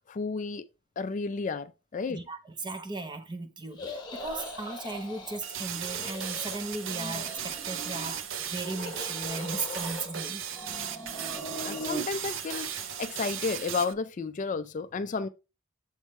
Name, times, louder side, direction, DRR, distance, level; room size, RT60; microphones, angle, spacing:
voice 1, 0.1-0.6 1.0-2.2 11.6-15.3, left 4 dB, 35° left, 0.3 m, -32 dB
voice 2, 2.1-8.2 8.5-10.4, right 2 dB, 20° right, 0.6 m, -37 dB
sound 1, 3.7-5.4 5.7-6.6 6.8-8.2 8.6-10.2 10.5-12.1, equal, 20° left, 1.2 m, -40 dB
sound 2, 5.4-13.9, right 9 dB, 65° right, 0.6 m, -36 dB
7.2 x 3.5 x 4.2 m
head